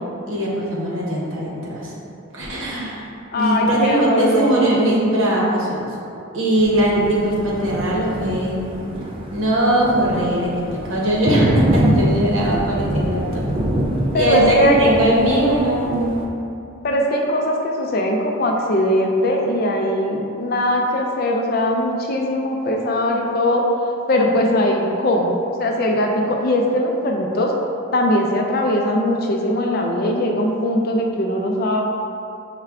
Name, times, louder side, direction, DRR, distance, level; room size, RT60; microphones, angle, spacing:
voice 1, 0.3-1.9 2.3-3.1 3.3-5.9 6.3-8.7 9.3-13.4 14.1-16.2, right 1 dB, 75° right, -4 dB, 0.9 m, -20 dB
voice 2, 3.3-4.8 14.1-14.8 16.8-23.7 24.1-27.5 27.9-31.8, left 1 dB, 45° left, 1 dB, 0.4 m, -20 dB
Thunder, 6.6-16.2, equal, 25° right, 0.3 m, -24 dB
5.7 x 2.2 x 3.5 m, 2.7 s
head